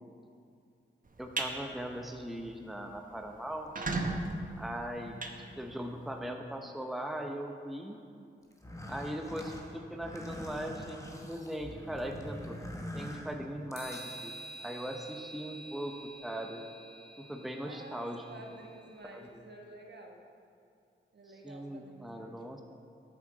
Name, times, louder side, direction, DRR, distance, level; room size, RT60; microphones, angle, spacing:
sound 1, 1.1-1.5 2.0-2.2 2.6-2.7 2.9-3.0 3.5-6.1, right 2 dB, 45° right, 0.8 m, -36 dB
voice 1, 1.2-3.9 4.6-5.2 5.6-8.0 8.9-12.6 12.9-14.3 14.6-16.6 17.2-18.2 19.1-19.4 21.4-22.6, right 1 dB, ahead, 3 dB, 0.7 m, -39 dB
sound 2, 8.5-14.2, left 1 dB, 15° left, 1.1 m, -44 dB
sound 3, 13.7-19.0, right 1 dB, 55° left, 1.9 m, -49 dB
voice 2, 17.6-20.2 21.1-22.4, right 2 dB, 60° right, 1 dB, 1.1 m, -51 dB
8.2 x 7.0 x 4.0 m, 2.4 s
cardioid pair, 45°, 20 cm